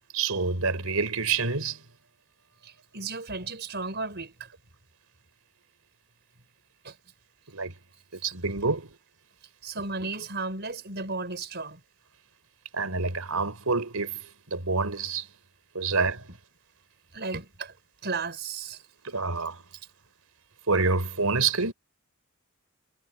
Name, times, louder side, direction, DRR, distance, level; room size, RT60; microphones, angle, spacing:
voice 1, 0.1-1.8 7.5-7.7 8.1-8.9 12.7-14.2 14.5-15.3 15.7-16.2 19.0-19.6 20.7-21.7, right 4 dB, 90° right, 4.4 m, -27 dB
voice 2, 2.6-4.5 6.8-7.0 9.6-11.8 15.9-16.0 16.3-16.4 17.1-17.7 18.0-18.8, right 3 dB, 50° right, 5.3 m, -34 dB
head